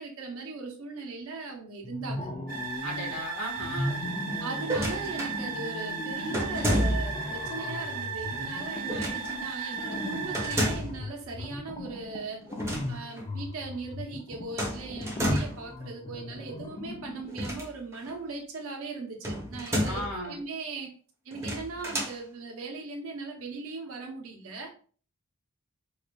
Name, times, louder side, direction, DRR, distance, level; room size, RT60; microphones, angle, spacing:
voice 1, 0.0-2.5 4.4-12.5 12.9-20.9 21.2-24.7, right 3 dB, 75° right, 0.9 m, -39 dB
sound 1, 1.8-3.2 3.6-17.5, left 1 dB, 25° left, 0.4 m, -38 dB
sound 2, 2.5-10.7, right 5 dB, 40° right, 0.8 m, -36 dB
voice 2, 2.8-4.0 19.8-20.4, equal, 80° left, 1.4 m, -36 dB
sound 3, 4.6-5.4 6.3-7.2 8.9-9.3 10.3-11.0 12.5-12.9 13.2-13.3 14.6-15.7 17.3-18.1 19.2-20.2 21.3-22.2, equal, 15° right, 0.8 m, -30 dB
4.7 x 2.4 x 2.3 m
head